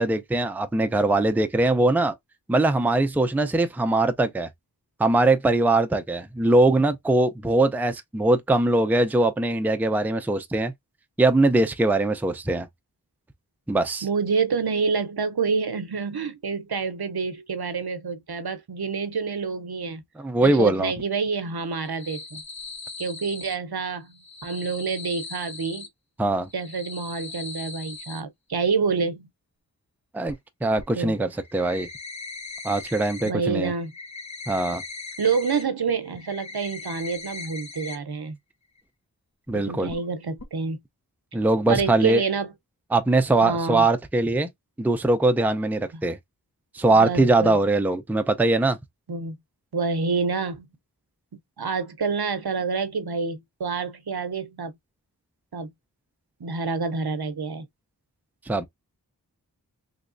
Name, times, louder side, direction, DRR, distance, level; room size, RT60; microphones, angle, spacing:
voice 1, 0.0-2.1 2.5-4.5 5.0-10.7 11.2-12.7 13.7-14.1 20.2-20.9 26.2-26.5 30.1-30.4 30.6-31.9 32.6-33.7 34.5-34.8 39.5-39.9 41.3-42.2 42.9-44.5 44.8-46.2 46.7-48.8 58.5-58.7, right 2 dB, 5° right, 0.4 m, -21 dB
voice 2, 14.0-20.0 20.4-22.4 23.0-25.9 26.5-29.3 30.9-31.2 33.2-33.9 35.2-38.4 39.5-40.8 41.7-42.5 43.4-43.9 45.9-46.0 46.9-47.6 49.1-49.4 49.7-50.7 51.6-54.7 55.5-55.7 56.4-57.7, right 5 dB, 70° right, 0.7 m, -27 dB
sound 1, 21.7-23.6 24.1-25.9 26.4-28.2 30.3-30.4 30.8-30.9 31.3-33.3 33.6-35.6 36.0-38.0 38.3-38.4 38.8-38.9 39.9-40.1 40.4-40.5, left 4 dB, 45° left, 0.7 m, -39 dB
3.3 x 3.0 x 2.5 m
wide cardioid pair, 40°, 39 cm